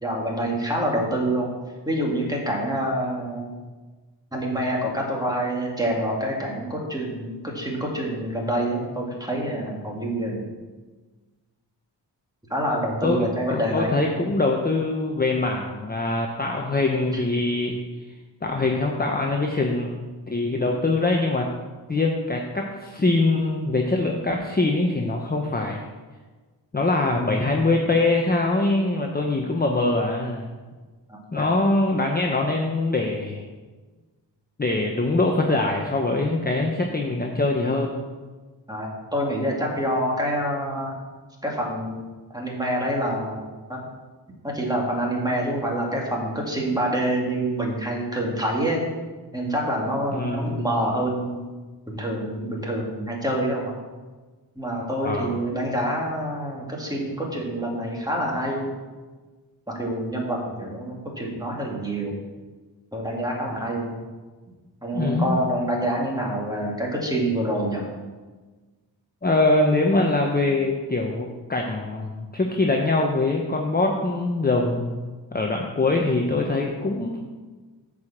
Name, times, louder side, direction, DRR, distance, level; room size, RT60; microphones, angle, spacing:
voice 1, 0.0-1.5 1.8-3.6 4.3-10.5 12.5-14.1 17.1-17.2 31.1-31.5 38.7-40.9 41.4-42.0 42.3-43.4 43.7-43.8 44.4-48.9 49.3-51.4 51.9-53.7 54.6-58.7 59.7-62.2 62.9-64.0 64.8-67.9, right 1 dB, 10° right, -2 dB, 2.4 m, -26 dB
voice 2, 13.0-17.8 18.4-20.0 20.3-21.5 21.9-25.9 26.7-30.5 31.3-33.4 34.6-38.1 50.1-50.6 55.0-55.4 64.9-65.4 69.2-75.1 75.3-77.2, left 2 dB, 20° left, 1 dB, 0.9 m, -23 dB
8.1 x 5.0 x 7.3 m, 1.3 s
wide cardioid pair, 90°, 44 cm